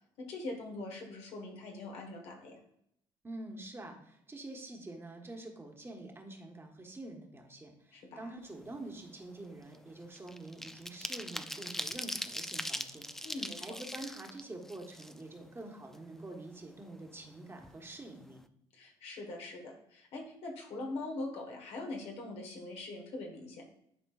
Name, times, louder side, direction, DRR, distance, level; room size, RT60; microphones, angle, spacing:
voice 1, 0.2-2.6 7.9-8.3 13.2-13.6 18.7-23.6, left 2 dB, 75° left, 1 dB, 1.5 m, -42 dB
voice 2, 3.2-18.4, right 2 dB, 25° right, 2 dB, 1.4 m, -47 dB
sound 1, 8.6-8.8 9.1-15.6 15.9-16.0 16.3-17.3 17.6-17.8 18.1-18.4, left 1 dB, 5° left, 0.4 m, -41 dB
10.5 x 4.3 x 2.4 m, 0.73 s
supercardioid pair, 75°, 10 cm